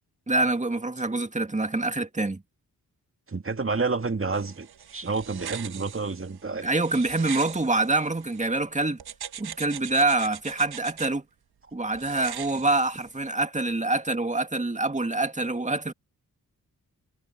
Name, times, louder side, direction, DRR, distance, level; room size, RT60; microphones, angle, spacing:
voice 1, 0.3-2.4 6.6-9.0 9.4-11.2 11.7-15.9, right 2 dB, 20° right, 2.0 m, -26 dB
voice 2, 3.3-4.7 4.9-6.7, right 4 dB, 35° right, 2.0 m, -29 dB
sound 1, 4.3-8.5 9.0-11.1 11.9-13.3, right 9 dB, 90° right, 1.7 m, -41 dB
cardioid pair, 45°, 37 cm